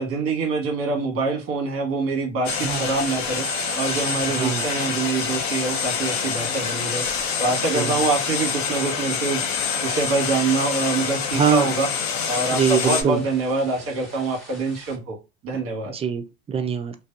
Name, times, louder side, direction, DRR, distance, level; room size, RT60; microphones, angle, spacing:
voice 1, 0.0-9.4 9.8-11.9 12.3-15.2 15.4-15.9, right 3 dB, 45° right, 1.1 m, -25 dB
sound 1, 2.4-13.0, left 6 dB, 60° left, 0.7 m, -26 dB
sound 2, 3.6-15.0, equal, ahead, 1.4 m, -45 dB
voice 2, 4.3-4.7 7.7-8.0 11.3-11.7 12.5-13.2 15.9-17.0, right 7 dB, 20° right, 0.3 m, -23 dB
2.6 x 2.2 x 2.3 m
hypercardioid pair, 85°, 32 cm